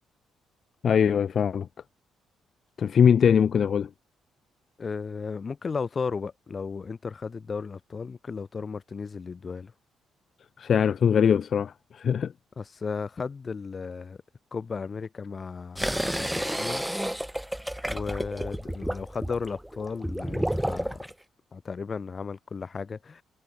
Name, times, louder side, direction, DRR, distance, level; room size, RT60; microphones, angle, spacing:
voice 1, 0.8-1.7 2.8-3.9 10.6-12.3, left 7 dB, 55° left, 2.1 m, -22 dB
voice 2, 4.8-9.7 12.6-14.2 14.5-16.8 17.9-21.0 21.5-23.2, left 5 dB, 35° left, 5.2 m, -35 dB
sound 1, 15.8-21.1, equal, 5° right, 2.4 m, -31 dB
cardioid pair, 90°, 0 cm